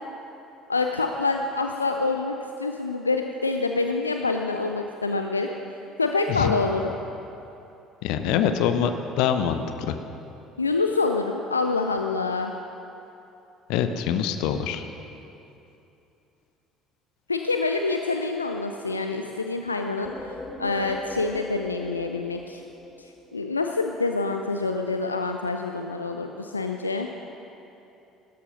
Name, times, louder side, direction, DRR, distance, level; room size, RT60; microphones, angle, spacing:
voice 1, 0.7-5.5 6.0-6.9 10.6-12.5 17.3-22.6 23.0-27.1, left 3 dB, 85° left, 4 dB, 0.5 m, -26 dB
voice 2, 8.0-8.9 9.2-10.0 13.7-14.9, left 9 dB, 60° left, 8 dB, 0.8 m, -24 dB
sound 1, 20.0-23.6, left 2 dB, 20° left, 2.4 m, -40 dB
17.0 x 13.0 x 5.3 m, 2.8 s
figure-of-eight pair, 55°, 0 cm